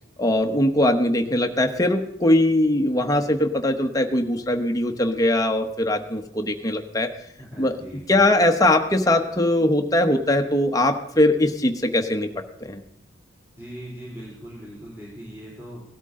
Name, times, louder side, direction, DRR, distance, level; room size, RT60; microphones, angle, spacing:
voice 1, 0.2-7.1 7.6-7.7 8.1-12.3 12.6-12.8, left 1 dB, 20° left, 4 dB, 1.0 m, -21 dB
voice 2, 7.4-8.2 13.6-15.8, equal, 15° right, -6 dB, 3.2 m, -40 dB
17.5 x 13.0 x 3.8 m, 0.75 s
head